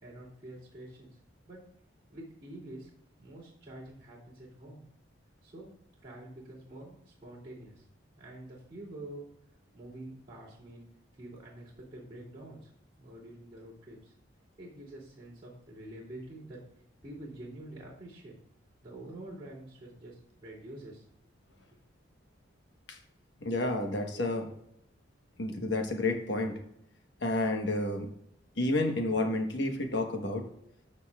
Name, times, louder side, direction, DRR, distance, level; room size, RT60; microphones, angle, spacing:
voice 1, 0.0-1.1 1.5-1.6 2.1-2.9 3.2-4.8 5.4-5.7 6.0-7.8 8.2-9.3 9.7-10.8 11.1-12.7 13.0-14.1 14.6-16.6 17.0-18.3 18.8-21.0, right 1 dB, 25° right, -8 dB, 2.8 m, -47 dB
voice 2, 23.4-24.5 25.4-26.5 27.2-28.1 28.6-30.4, left 2 dB, 60° left, 3 dB, 1.2 m, -30 dB
13.0 x 5.5 x 2.4 m, 0.77 s
head